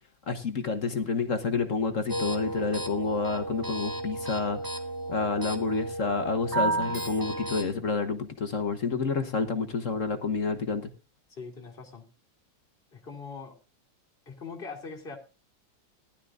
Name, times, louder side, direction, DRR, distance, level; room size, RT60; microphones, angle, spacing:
voice 1, 0.3-4.6 5.1-10.9, left 4 dB, 50° left, 8 dB, 1.3 m, -29 dB
sound 1, 2.1-7.6, right 2 dB, 10° right, 1.7 m, -33 dB
voice 2, 11.3-12.1 12.9-13.6 14.3-15.2, left 4 dB, 30° left, 0 dB, 2.8 m, -41 dB
19.5 x 11.5 x 2.5 m, 0.31 s
omnidirectional pair, 2.0 m